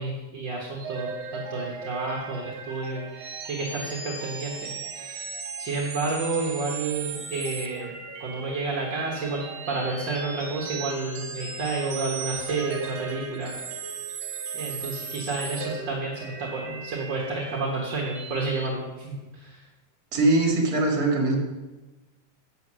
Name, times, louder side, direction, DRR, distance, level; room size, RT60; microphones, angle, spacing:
voice 1, 0.0-4.7 5.0-5.3 5.6-13.5 14.5-19.6, right 3 dB, 50° right, -2 dB, 1.5 m, -30 dB
sound 1, 0.8-18.7, right 5 dB, 75° right, 1.0 m, -37 dB
voice 2, 20.1-21.4, right 2 dB, 35° right, -1 dB, 1.8 m, -21 dB
8.1 x 8.0 x 6.2 m, 1.2 s
omnidirectional pair, 3.6 m